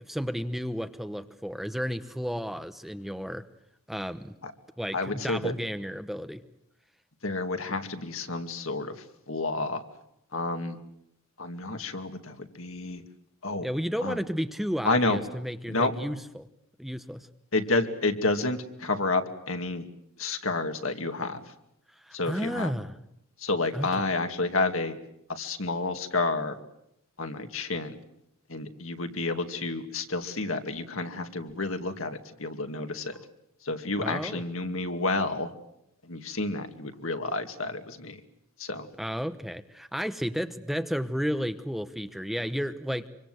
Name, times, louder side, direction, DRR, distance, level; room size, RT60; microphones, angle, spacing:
voice 1, 0.0-3.5 3.9-4.4 4.8-6.4 13.6-16.5 16.8-17.3 22.1-22.9 23.7-23.9 34.0-34.4 39.0-43.1, equal, ahead, 10 dB, 1.0 m, -32 dB
voice 2, 4.9-5.5 7.2-9.8 10.3-10.8 11.4-13.0 13.4-13.7 14.0-14.2 14.8-15.2 15.7-15.9 17.5-19.9 20.2-21.5 22.1-22.7 23.4-24.9 25.3-26.6 27.2-28.0 28.5-33.1 33.6-35.5 36.0-38.2 38.6-38.9, left 3 dB, 70° left, 7 dB, 2.4 m, -30 dB
25.5 x 25.0 x 7.9 m, 0.78 s
head